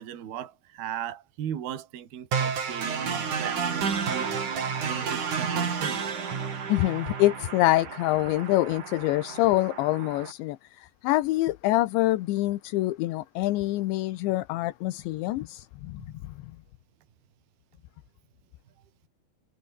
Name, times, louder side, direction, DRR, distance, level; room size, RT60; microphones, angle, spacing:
voice 1, 0.0-4.3 4.8-6.1, right 10 dB, 60° right, 4.3 m, -37 dB
sound 1, 2.3-10.3, right 6 dB, 45° right, 4.8 m, -31 dB
voice 2, 6.7-16.3, left 17 dB, 80° left, 3.3 m, -26 dB
omnidirectional pair, 5.4 m